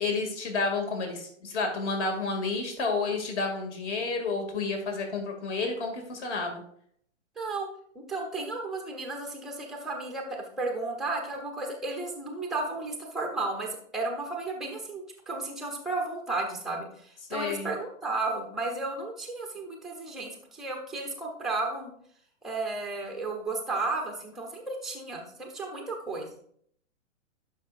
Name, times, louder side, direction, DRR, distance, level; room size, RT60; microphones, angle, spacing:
voice 1, 0.0-6.6 17.3-17.7, left 3 dB, 60° left, 3 dB, 2.2 m, -30 dB
voice 2, 7.4-7.7 8.1-21.9 22.4-26.3, right 3 dB, ahead, 1 dB, 0.3 m, -33 dB
11.5 x 5.6 x 2.4 m, 0.64 s
hypercardioid pair, 125°, 39 cm